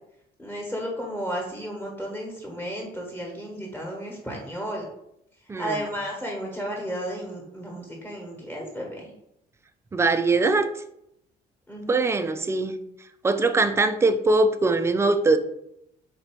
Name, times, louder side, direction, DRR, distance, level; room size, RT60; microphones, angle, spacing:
voice 1, 0.4-4.8 5.6-9.1 11.7-12.0, equal, 10° left, 1.3 m, -33 dB
voice 2, 5.5-5.8 9.9-10.7 11.9-12.8 13.2-15.4, right 3 dB, 15° right, 0.4 m, -22 dB
4.0 x 2.8 x 4.5 m
cardioid pair, 110°, 17 cm